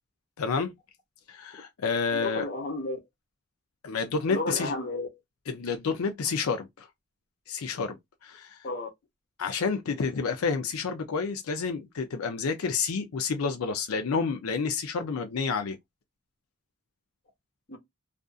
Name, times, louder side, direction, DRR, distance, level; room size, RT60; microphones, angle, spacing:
voice 1, 0.4-0.7 1.3-2.4 3.8-4.7 5.5-6.9 7.5-8.0 8.2-8.6 9.4-15.8, left 5 dB, 90° left, 0.5 m, -29 dB
voice 2, 2.1-3.0 4.3-5.1 8.6-8.9 17.7-17.8, left 2 dB, 45° left, 0.9 m, -32 dB
2.5 x 2.5 x 2.3 m
head